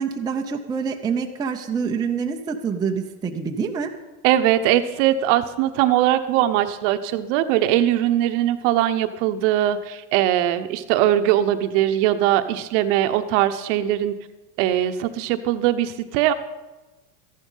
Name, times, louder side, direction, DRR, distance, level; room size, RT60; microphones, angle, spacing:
voice 1, 0.0-3.9, right 6 dB, 10° right, 2 dB, 0.6 m, -26 dB
voice 2, 4.2-14.1 14.6-16.3, right 12 dB, 50° right, 10 dB, 0.9 m, -21 dB
14.0 x 11.5 x 5.5 m, 1.1 s
supercardioid pair, 130°, 46 cm